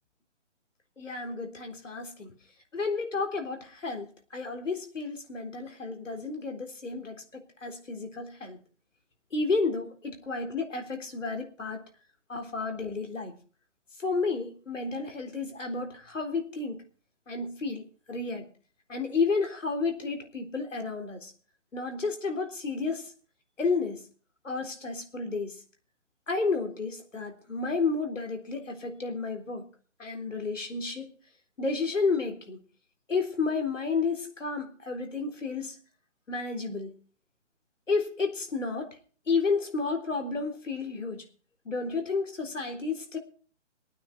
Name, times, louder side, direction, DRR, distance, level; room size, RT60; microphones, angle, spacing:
voice 1, 1.0-2.3 2.7-8.6 9.3-11.8 12.3-13.3 14.0-16.8 17.3-17.8 18.1-18.5 18.9-21.3 21.7-23.1 23.6-24.0 24.4-25.6 26.3-29.7 30.0-31.1 31.6-32.6 33.1-35.8 36.3-36.9 37.9-39.0 39.3-41.2 41.7-43.2, left 4 dB, 85° left, 3 dB, 3.8 m, -31 dB
20.5 x 9.3 x 4.8 m, 0.42 s
hypercardioid pair, 165°, 37 cm